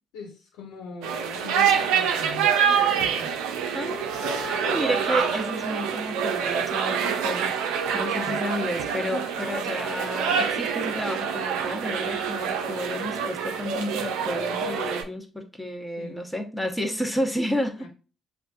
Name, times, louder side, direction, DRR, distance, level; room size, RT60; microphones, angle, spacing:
voice 1, 0.1-3.3 8.2-8.5 16.0-16.2 17.8-17.9, left 3 dB, 80° left, 1.2 m, -40 dB
sound 1, 1.0-15.0, right 7 dB, 80° right, 0.5 m, -26 dB
voice 2, 3.7-17.9, equal, 10° left, 1.1 m, -31 dB
7.3 x 2.5 x 2.4 m
hypercardioid pair, 50°, 0 cm